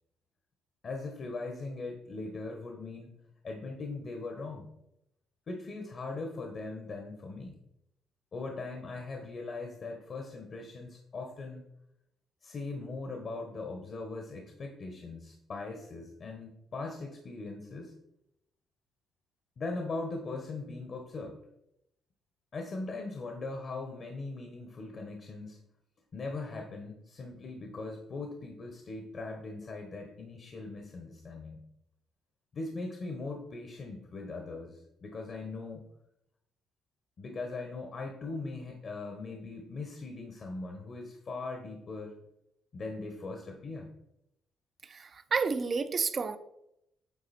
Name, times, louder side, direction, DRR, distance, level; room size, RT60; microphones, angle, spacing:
voice 1, 0.8-3.1 3.4-4.7 5.5-7.6 8.3-11.6 12.4-17.9 19.6-21.4 22.5-25.6 26.1-31.6 32.5-35.9 37.2-42.2 42.7-43.9, left 3 dB, 50° left, 3 dB, 1.2 m, -40 dB
voice 2, 44.9-46.4, right 5 dB, 45° right, 11 dB, 0.6 m, -30 dB
8.5 x 4.1 x 4.3 m, 0.81 s
supercardioid pair, 75°, 0 cm